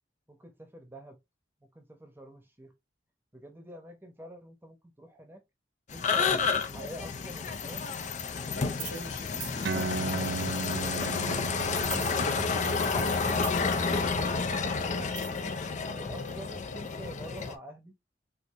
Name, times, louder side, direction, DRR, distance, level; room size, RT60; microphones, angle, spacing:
voice 1, 0.3-1.2 1.6-2.7 3.3-5.4 5.9-9.1 10.9-13.1 15.7-18.0, equal, 15° right, 0.9 m, -47 dB
sound 1, 5.9-17.6, left 4 dB, 45° left, 0.5 m, -30 dB
voice 2, 8.4-9.7 12.7-14.9, left 1 dB, 85° left, 1.7 m, -43 dB
sound 2, 8.7-9.1 9.4-9.6 11.8-12.7 13.0-13.8 15.2-15.5, right 7 dB, 50° right, 0.9 m, -41 dB
sound 3, 9.6-16.6, right 4 dB, 70° right, 0.4 m, -38 dB
4.5 x 2.6 x 2.5 m
head